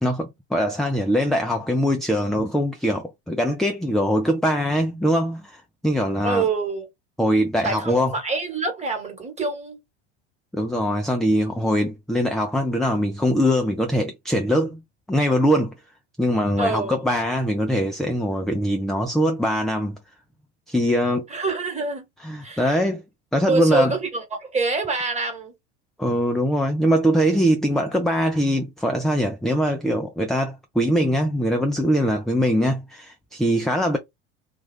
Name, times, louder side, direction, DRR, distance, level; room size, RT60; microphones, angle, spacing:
voice 1, 0.0-6.5 7.2-8.2 10.5-14.8 15.1-15.7 16.2-20.0 20.7-21.2 22.2-23.0 23.3-24.0 26.0-34.0, equal, ahead, 0.5 m, -22 dB
voice 2, 6.2-6.9 7.6-9.8 16.6-17.0 21.3-22.0 22.4-22.8 23.5-25.5, right 3 dB, 20° right, 1.4 m, -26 dB
2.5 x 2.3 x 3.3 m
hypercardioid pair, 85°, 34 cm